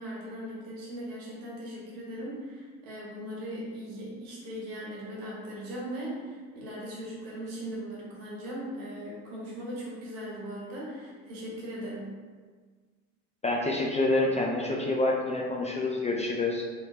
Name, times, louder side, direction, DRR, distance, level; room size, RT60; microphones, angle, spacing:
voice 1, 0.0-12.1, equal, 80° right, -5 dB, 1.3 m, -39 dB
voice 2, 13.4-16.6, left 2 dB, 20° left, -2 dB, 0.4 m, -27 dB
3.2 x 3.1 x 2.8 m, 1.5 s
supercardioid pair, 75°, 35 cm